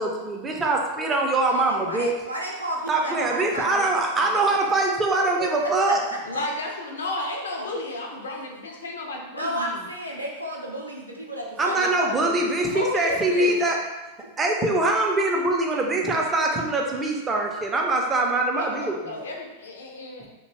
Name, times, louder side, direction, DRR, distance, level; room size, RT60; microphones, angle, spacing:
voice 1, 0.0-2.1 2.9-6.0 11.6-13.8 14.4-19.2, right 2 dB, 20° right, 0 dB, 0.4 m, -23 dB
voice 2, 1.5-4.6 5.4-6.4 7.7-7.8 9.3-12.5 13.0-13.1 13.4-13.6, equal, 90° right, -2 dB, 0.5 m, -33 dB
voice 3, 6.2-9.8 12.7-13.6 18.6-20.3, left 2 dB, 70° left, 1 dB, 0.4 m, -32 dB
2.5 x 2.2 x 3.0 m, 1.2 s
figure-of-eight pair, 90°, 0 cm